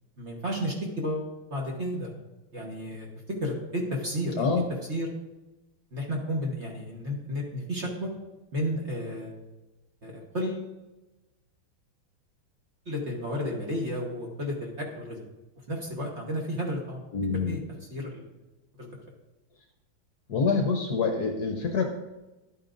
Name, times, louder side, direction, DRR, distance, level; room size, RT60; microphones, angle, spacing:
voice 1, 0.2-2.1 2.5-3.1 3.4-4.5 4.9-5.1 5.9-8.1 8.5-9.4 10.0-10.7 12.8-15.2 15.7-17.0 17.3-18.3 18.8-18.9, equal, 35° right, -1 dB, 1.3 m, -32 dB
voice 2, 17.1-17.5 20.3-21.9, left 4 dB, 60° left, 3 dB, 1.1 m, -26 dB
11.5 x 8.6 x 2.6 m, 1.1 s
omnidirectional pair, 2.3 m